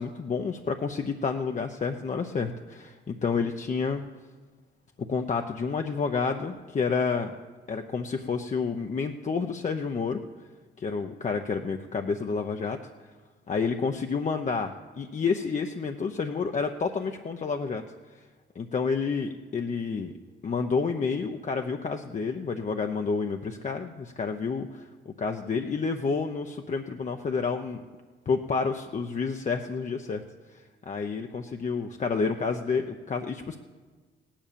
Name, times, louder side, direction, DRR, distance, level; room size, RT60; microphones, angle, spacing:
voice 1, 0.0-4.0 5.0-7.3 7.7-10.2 10.8-12.8 13.5-17.8 18.1-18.2 18.5-20.1 20.4-27.8 28.3-30.2 30.5-33.6, left 5 dB, 40° left, 4 dB, 0.8 m, -29 dB
17.0 x 10.5 x 6.9 m, 1.4 s
cardioid pair, 90°, 20 cm